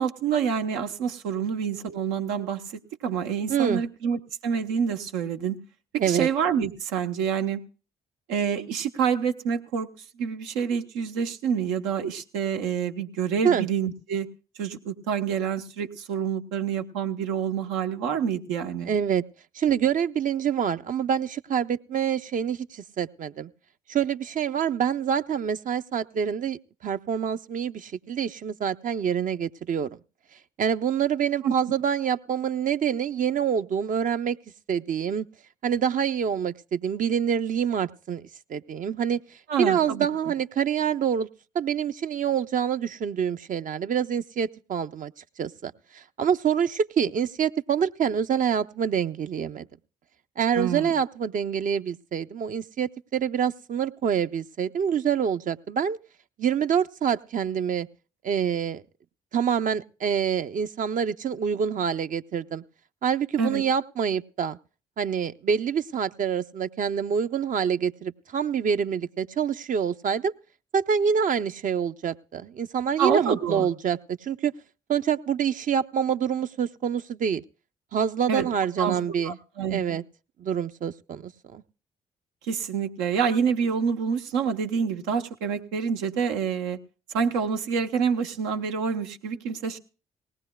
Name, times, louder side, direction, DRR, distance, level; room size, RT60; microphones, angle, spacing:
voice 1, 0.0-5.6 5.9-7.6 8.3-9.9 10.2-14.3 14.6-18.9 31.4-31.5 39.5-40.1 50.5-50.9 63.4-63.6 73.0-73.7 78.3-78.5 78.8-79.0 79.2-80.0 82.5-86.8 87.1-89.8, right 7 dB, 85° right, 6 dB, 0.8 m, -27 dB
voice 2, 3.5-3.8 6.0-6.3 13.4-13.7 18.8-19.2 19.5-23.5 23.9-29.9 30.6-34.4 34.7-35.3 35.6-39.2 39.6-41.3 41.5-45.1 45.4-49.7 50.4-56.0 56.4-57.9 58.2-58.8 59.3-62.6 63.0-64.6 65.0-70.3 70.7-74.5 74.9-77.4 77.9-79.4 79.7-80.0 80.4-81.6, right 8 dB, 50° right, 11 dB, 0.6 m, -26 dB
19.0 x 17.5 x 2.2 m, 0.36 s
hypercardioid pair, 50°, 17 cm